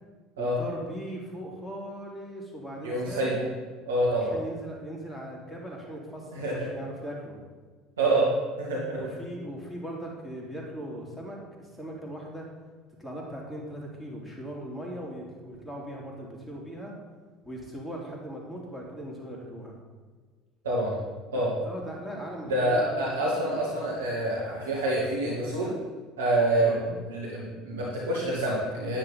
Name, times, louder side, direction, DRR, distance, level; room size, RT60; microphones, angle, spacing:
voice 1, 0.4-3.4 4.1-7.4 8.9-12.5 13.0-16.9 17.4-19.8 21.3-23.8 24.6-24.7 26.6-26.9, right 1 dB, 5° left, -3 dB, 3.1 m, -39 dB
voice 2, 2.8-3.4 3.9-4.4 6.3-6.7 8.0-8.3 8.6-9.0 20.6-21.0 21.3-21.5 22.5-25.7 26.2-29.0, right 1 dB, 75° right, -5 dB, 1.8 m, -27 dB
10.5 x 8.9 x 4.1 m, 1.4 s
figure-of-eight pair, 65°, 0 cm